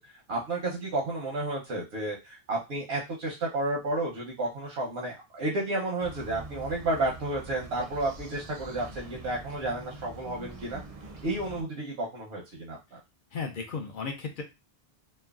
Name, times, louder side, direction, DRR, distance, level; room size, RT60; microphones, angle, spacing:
voice 1, 0.0-10.8 11.2-13.0, right 2 dB, 85° right, -2 dB, 1.0 m, -32 dB
sound 1, 6.0-11.6, right 2 dB, 50° right, 0.5 m, -45 dB
voice 2, 13.3-14.4, left 5 dB, 60° left, 3 dB, 0.7 m, -34 dB
3.1 x 2.1 x 2.3 m, 0.25 s
omnidirectional pair, 1.0 m